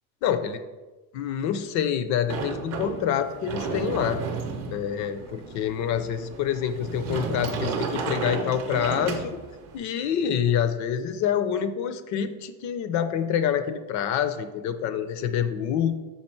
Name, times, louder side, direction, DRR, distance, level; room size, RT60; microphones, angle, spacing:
voice 1, 0.2-0.6 1.1-4.2 4.7-9.4 9.7-16.0, left 9 dB, 50° left, 10 dB, 0.4 m, -27 dB
Sliding door, 2.3-9.8, right 5 dB, 40° right, 0.7 m, -33 dB
5.7 x 4.3 x 4.5 m, 1.2 s
cardioid pair, 175°, 40 cm